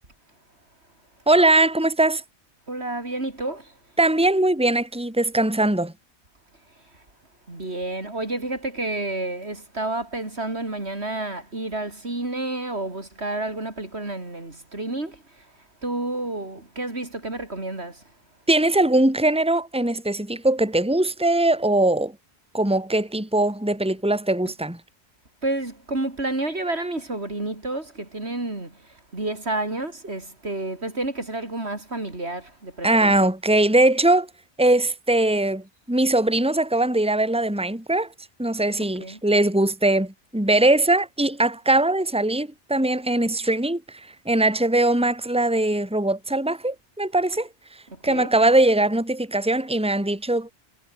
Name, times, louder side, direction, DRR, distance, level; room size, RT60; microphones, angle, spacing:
voice 1, 1.3-2.2 4.0-5.9 18.5-22.1 22.5-24.8 32.8-34.3 34.6-38.1 38.4-47.5 48.0-50.5, right 2 dB, 5° right, 2.6 m, -21 dB
voice 2, 2.7-3.7 7.5-15.2 15.8-18.0 25.4-28.7 29.1-33.1 39.0-39.2 48.0-48.3, right 2 dB, 65° right, 4.6 m, -30 dB
omnidirectional pair, 1.2 m